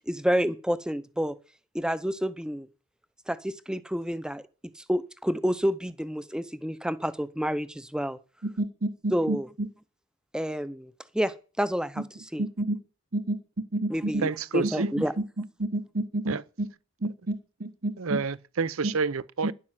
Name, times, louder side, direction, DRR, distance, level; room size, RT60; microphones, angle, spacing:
voice 1, 0.1-1.3 1.7-2.7 3.3-4.4 4.8-8.2 9.1-9.5 10.3-12.0 12.3-12.5 13.9-15.1, equal, 5° right, 0.6 m, -29 dB
voice 2, 8.4-9.7 12.4-12.8 13.1-13.4 13.7-14.2 14.8-16.7 17.0-18.2 18.8-18.9 19.4-19.5, right 1 dB, 45° right, 1.3 m, -30 dB
voice 3, 14.2-14.9 16.3-16.4 18.0-19.5, right 4 dB, 70° right, 0.7 m, -29 dB
12.0 x 11.0 x 7.6 m
head